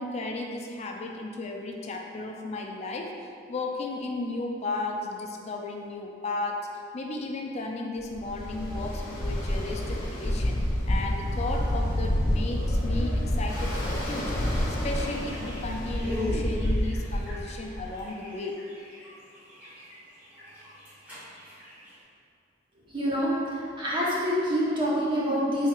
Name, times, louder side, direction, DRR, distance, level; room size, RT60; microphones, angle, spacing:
voice 1, 0.0-6.7 6.9-14.4 14.8-18.6, left 2 dB, 35° left, 1 dB, 0.3 m, -34 dB
Ocean, 8.1-18.0, left 1 dB, 50° left, 1.0 m, -28 dB
sound 1, 15.0-22.0, left 1 dB, 10° right, 1.3 m, -40 dB
voice 2, 22.9-25.7, equal, 25° right, -8 dB, 0.8 m, -26 dB
4.3 x 3.4 x 2.3 m, 2.4 s
head